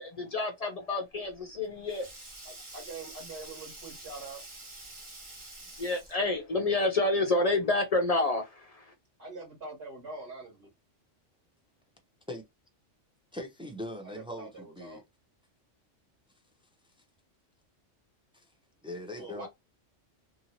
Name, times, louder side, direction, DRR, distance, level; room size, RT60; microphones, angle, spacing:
voice 1, 0.0-2.1 5.8-8.9, left 2 dB, 50° left, 0.5 m, -29 dB
Sink (filling or washing), 1.2-6.4, right 2 dB, 30° right, 0.8 m, -47 dB
voice 2, 2.4-4.4 9.2-10.7 14.0-15.0 19.2-19.5, right 3 dB, 60° right, 1.4 m, -44 dB
voice 3, 13.3-15.0 18.3-18.5 18.8-19.5, left 1 dB, 10° right, 0.3 m, -40 dB
2.8 x 2.7 x 2.7 m
omnidirectional pair, 1.2 m